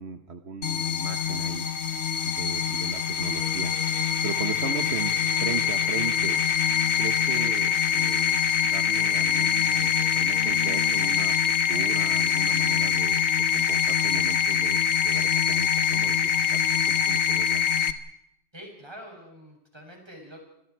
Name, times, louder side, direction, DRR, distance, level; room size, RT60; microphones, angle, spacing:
voice 1, 0.0-1.7 2.2-3.7 4.2-6.4 7.0-17.7, right 5 dB, 65° right, 7 dB, 1.5 m, -37 dB
sound 1, 0.6-17.9, left 8 dB, 70° left, 1.5 m, -24 dB
sound 2, 3.4-11.2, right 1 dB, 30° left, 3.4 m, -47 dB
voice 2, 18.5-20.4, equal, 20° right, 0 dB, 7.4 m, -45 dB
30.0 x 25.5 x 4.7 m, 0.82 s
omnidirectional pair, 1.2 m